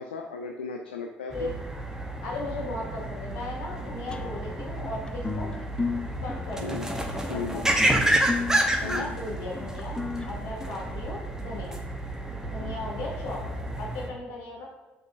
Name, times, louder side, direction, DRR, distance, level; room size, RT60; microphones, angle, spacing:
voice 1, 0.0-1.5 6.6-6.9 7.3-7.7 8.8-9.2, left 5 dB, 80° left, 3 dB, 0.4 m, -35 dB
sound 1, 1.3-14.1, right 1 dB, 10° right, 0.9 m, -30 dB
voice 2, 2.2-5.5 6.2-7.9 8.8-10.0 10.3-11.8 12.5-13.4 13.8-14.7, left 2 dB, 65° left, -2 dB, 1.8 m, -37 dB
sound 2, 4.1-11.5, left 4 dB, 15° left, 0.5 m, -35 dB
6.8 x 6.5 x 2.5 m, 1.1 s
figure-of-eight pair, 55°, 5 cm